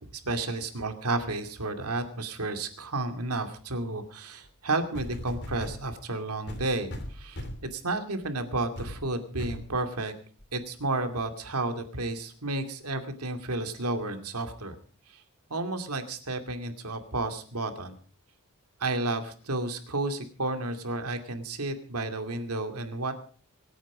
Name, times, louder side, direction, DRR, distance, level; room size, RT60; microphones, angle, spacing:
voice 1, 0.1-7.5 7.7-10.1 10.5-14.7 15.1-15.2 15.5-18.0 18.8-23.1, right 2 dB, 80° right, 7 dB, 2.5 m, -32 dB
sound 1, 4.4-4.5 4.9-5.8 6.5-7.7 8.2-8.4 8.8-9.0 9.4-9.7 10.4-10.5, left 1 dB, 50° left, 2.8 m, -38 dB
25.5 x 9.4 x 5.0 m, 0.42 s
head